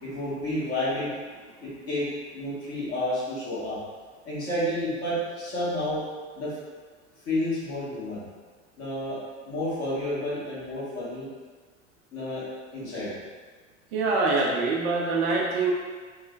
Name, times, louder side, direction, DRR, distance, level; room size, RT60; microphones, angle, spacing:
voice 1, 0.0-1.1 1.6-2.1 2.3-3.8 4.2-6.0 6.3-6.5 7.2-8.2 8.8-9.2 9.4-11.3 12.1-12.4 12.7-13.1, left 1 dB, 35° left, -9 dB, 1.3 m, -30 dB
voice 2, 13.9-15.7, right 3 dB, 45° right, -3 dB, 0.5 m, -24 dB
3.1 x 2.1 x 2.5 m, 1.5 s
figure-of-eight pair, 80°, 40 cm